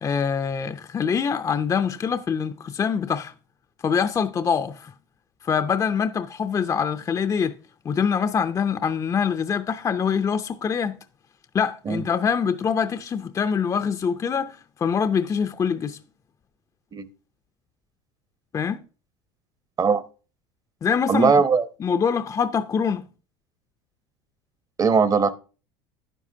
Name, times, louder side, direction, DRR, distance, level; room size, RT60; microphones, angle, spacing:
voice 1, 0.0-3.3 3.8-4.9 5.4-7.6 7.8-11.0 11.5-16.0 18.5-18.8 20.8-21.4 21.8-23.1, left 6 dB, 25° left, 0.5 m, -24 dB
voice 2, 21.1-21.7 24.8-25.4, right 5 dB, 30° right, 0.8 m, -19 dB
11.0 x 9.9 x 2.7 m
supercardioid pair, 95°, 13 cm